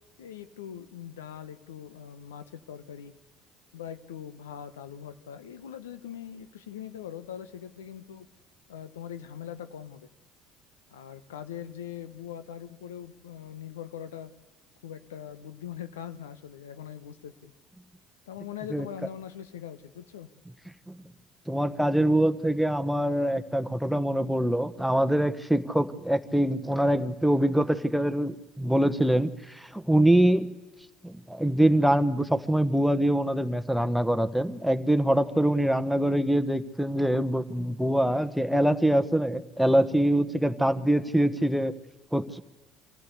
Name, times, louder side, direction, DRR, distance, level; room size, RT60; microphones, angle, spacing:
voice 1, 0.2-3.1 3.7-8.3 8.7-10.1 10.9-14.3 14.8-17.5 18.3-20.3, left 9 dB, 85° left, 12 dB, 0.9 m, -41 dB
voice 2, 21.5-30.5 31.0-41.7 42.1-42.4, right 1 dB, ahead, 11 dB, 1.2 m, -24 dB
24.5 x 15.0 x 8.2 m, 1.1 s
hypercardioid pair, 65°, 0 cm